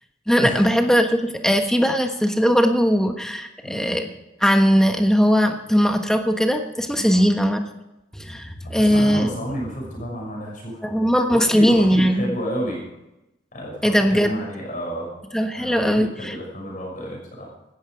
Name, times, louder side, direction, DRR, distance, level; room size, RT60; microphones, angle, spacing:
voice 1, 0.3-4.1 4.4-7.6 8.1-9.3 10.8-12.3 13.8-14.4 15.3-16.4, equal, 5° left, 5 dB, 1.3 m, -19 dB
voice 2, 3.6-4.0 6.9-7.3 8.7-12.8 13.5-15.1 15.5-17.5, equal, 45° left, -2 dB, 5.9 m, -31 dB
17.0 x 13.0 x 5.1 m, 0.94 s
head